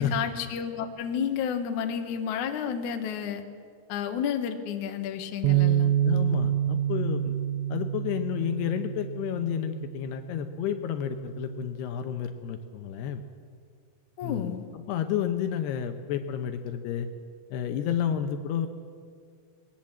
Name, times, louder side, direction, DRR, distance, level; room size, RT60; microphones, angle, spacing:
voice 1, 0.0-3.4 3.9-6.0 14.2-14.7, left 8 dB, 60° left, 6 dB, 2.2 m, -31 dB
Bass guitar, 5.4-11.7, right 11 dB, 85° right, 2.1 m, -28 dB
voice 2, 6.0-7.4 7.7-13.2 14.2-14.5 14.9-17.1 17.5-18.7, left 9 dB, 75° left, 7 dB, 2.8 m, -30 dB
20.5 x 19.0 x 7.6 m, 2.1 s
omnidirectional pair, 5.1 m